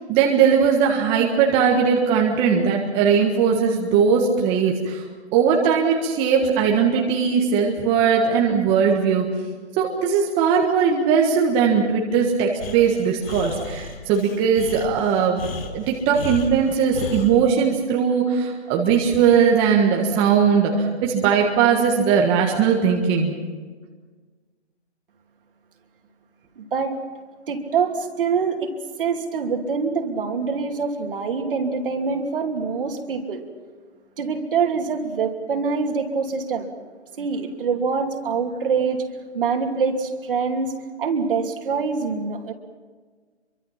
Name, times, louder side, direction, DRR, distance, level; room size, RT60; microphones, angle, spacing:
voice 1, 0.1-5.0 5.3-9.3 9.8-23.4, right 6 dB, 15° right, 0 dB, 1.6 m, -19 dB
Breathing, 12.6-17.3, left 4 dB, 55° left, 4.0 m, -33 dB
voice 2, 26.6-26.9 27.5-28.7 29.0-33.4 34.2-36.7 37.2-39.0 39.3-40.7 41.0-42.5, right 5 dB, 50° right, 4 dB, 3.0 m, -24 dB
27.0 x 24.0 x 5.8 m, 1.5 s
hypercardioid pair, 155°, 35 cm